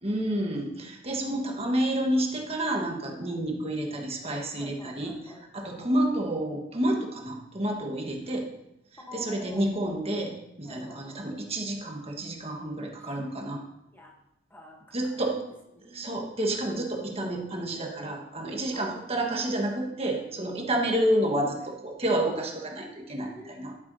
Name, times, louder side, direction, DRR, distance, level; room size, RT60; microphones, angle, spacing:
voice 1, 0.0-5.2 5.5-8.5 9.1-13.6 14.9-15.4 15.9-23.7, right 1 dB, 30° right, 1 dB, 1.4 m, -29 dB
voice 2, 1.1-1.6 3.2-3.4 4.6-5.9 9.1-9.7 10.6-11.2 13.0-13.1 13.9-14.1 14.5-15.5 15.7-16.5 18.7-18.8 23.3-23.8, equal, 10° left, 0 dB, 1.1 m, -48 dB
11.0 x 9.4 x 2.8 m, 0.85 s
head